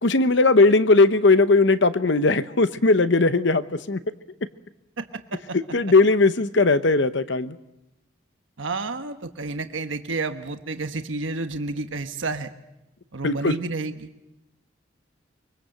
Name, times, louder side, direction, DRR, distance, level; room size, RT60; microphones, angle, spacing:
voice 1, 0.0-4.0 5.7-7.6 13.2-13.5, left 3 dB, 60° left, 13 dB, 0.9 m, -18 dB
voice 2, 5.0-5.4 8.6-12.5 13.1-14.1, right 3 dB, 75° right, 8 dB, 1.2 m, -30 dB
24.5 x 23.5 x 7.8 m, 0.92 s
head